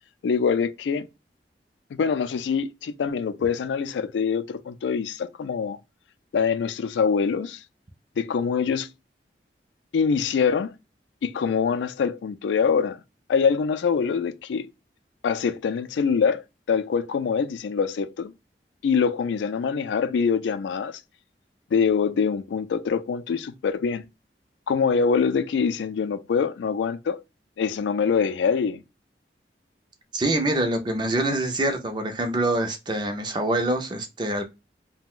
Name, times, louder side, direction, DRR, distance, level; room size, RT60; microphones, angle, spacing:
voice 1, 0.2-1.1 1.9-5.8 6.3-7.6 8.2-8.9 9.9-10.7 11.2-13.0 13.3-14.7 15.2-18.3 18.8-21.0 21.7-24.0 24.7-27.2 27.6-28.8, left 6 dB, 90° left, 0.3 m, -24 dB
voice 2, 30.1-34.4, right 1 dB, 25° right, 0.4 m, -25 dB
2.4 x 2.1 x 3.6 m
head